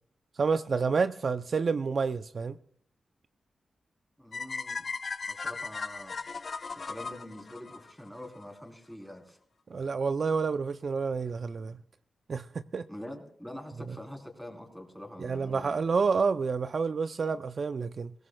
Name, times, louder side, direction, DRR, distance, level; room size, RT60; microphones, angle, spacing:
voice 1, 0.4-2.6 9.7-11.8 12.3-12.9 15.2-18.1, right 5 dB, 55° right, 11 dB, 0.4 m, -29 dB
voice 2, 4.2-4.9 5.3-6.2 6.8-9.4 12.9-15.8, left 1 dB, ahead, 2 dB, 3.5 m, -45 dB
sound 1, 4.3-8.4, left 4 dB, 55° left, 0.8 m, -37 dB
21.0 x 17.5 x 2.2 m, 0.62 s
cardioid pair, 65°, 0 cm